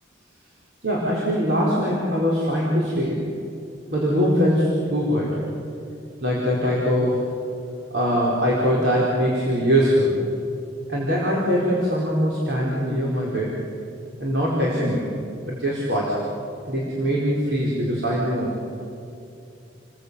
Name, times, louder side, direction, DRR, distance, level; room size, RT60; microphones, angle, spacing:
voice 1, 0.8-3.2 3.9-5.3 6.2-7.2 7.9-10.2 10.9-13.6 14.2-15.1 15.5-16.2 16.7-18.6, equal, 70° right, -5 dB, 4.8 m, -22 dB
29.5 x 21.5 x 8.3 m, 2.7 s
head